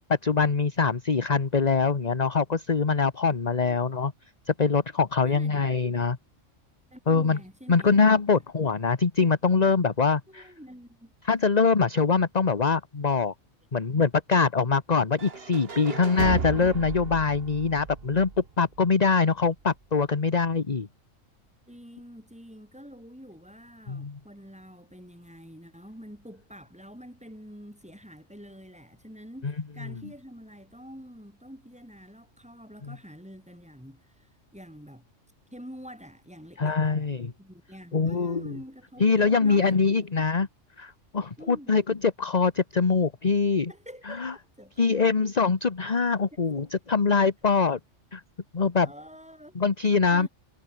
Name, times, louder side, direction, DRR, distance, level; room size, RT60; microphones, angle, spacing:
voice 1, 0.0-4.1 4.5-6.2 7.1-7.4 7.7-10.5 11.2-13.3 13.7-20.9 23.9-24.2 32.9-33.0 36.6-37.3 37.9-38.5 39.0-40.5 40.8-43.7 44.1-44.3 44.8-47.8 48.1-48.2 48.5-48.9 49.5-50.3, left 5 dB, 35° left, 1.3 m, -23 dB
voice 2, 5.2-5.7 6.9-8.0 10.3-11.1 21.7-35.1 35.5-39.9 41.4-41.8 43.7-45.2 46.3-46.7 48.8-49.6 50.1-50.3, equal, 5° right, 6.4 m, -47 dB
sound 1, 15.2-19.1, right 5 dB, 50° right, 1.8 m, -34 dB
omnidirectional pair, 1.3 m